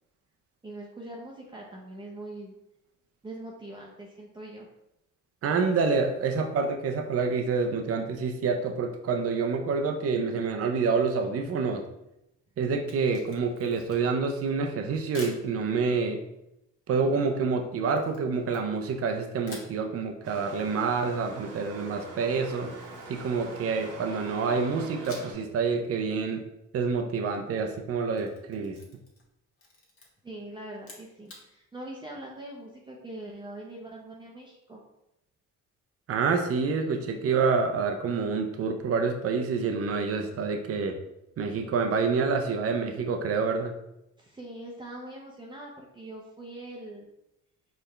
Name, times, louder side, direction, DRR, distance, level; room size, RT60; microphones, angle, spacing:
voice 1, 0.6-2.5 3.2-4.7 30.2-34.8 44.2-47.1, right 1 dB, 15° right, -3 dB, 0.7 m, -42 dB
voice 2, 5.4-11.8 12.6-16.2 16.9-22.7 23.1-26.4 26.7-28.8 36.1-41.0 41.4-43.7, right 4 dB, 50° right, 5 dB, 0.6 m, -27 dB
Camera, 12.8-14.2 15.1-15.5 17.9-19.1 19.4-19.8 22.4-23.9 25.0-25.5 25.8-25.9 27.9-29.3 29.6-30.1 30.7-31.5, left 2 dB, 45° left, 1.4 m, -48 dB
sound 1, 20.2-25.3, right 3 dB, 75° right, 1.1 m, -43 dB
4.5 x 3.4 x 3.2 m, 0.86 s
cardioid pair, 90°, 30 cm